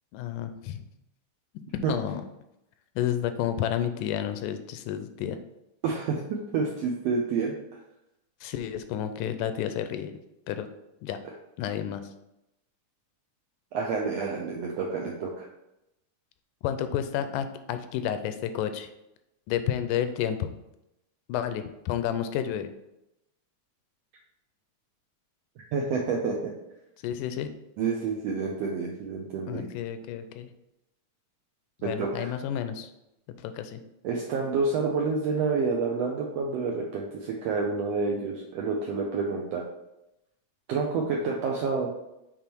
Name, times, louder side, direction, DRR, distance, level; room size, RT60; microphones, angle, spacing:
voice 1, 0.1-0.9 1.9-2.2 3.0-5.4 8.4-10.1 10.5-10.7 11.0-11.2 11.6-12.0 16.6-18.9 19.5-20.5 21.3-22.7 27.0-27.5 29.5-30.5 31.8-32.9 33.4-33.8, left 10 dB, 85° left, 9 dB, 2.1 m, -30 dB
voice 2, 5.8-6.2 6.5-7.5 13.7-15.5 25.7-26.3 27.8-29.7 31.8-32.3 34.0-39.6 40.7-41.9, right 4 dB, 80° right, 0 dB, 1.5 m, -28 dB
6.9 x 3.6 x 4.5 m, 0.88 s
omnidirectional pair, 3.7 m